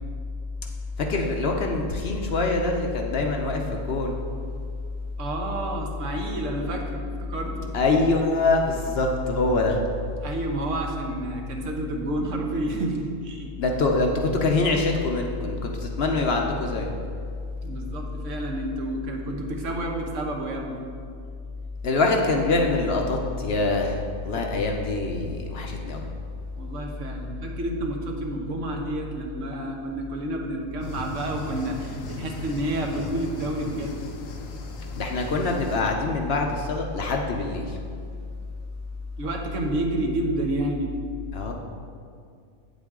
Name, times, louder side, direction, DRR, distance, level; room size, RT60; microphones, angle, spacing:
voice 1, 1.0-4.2 7.7-9.8 13.6-16.9 21.8-24.0 24.2-26.1 34.9-37.8 41.3-41.5, left 3 dB, 55° left, 2 dB, 0.8 m, -24 dB
voice 2, 5.2-7.7 10.2-13.5 17.6-20.8 26.6-34.0 39.2-40.9, right 1 dB, 65° right, 1 dB, 1.3 m, -30 dB
sound 1, 30.8-35.8, left 2 dB, 75° left, 1.2 m, -39 dB
8.5 x 7.6 x 3.6 m, 2.3 s
omnidirectional pair, 1.4 m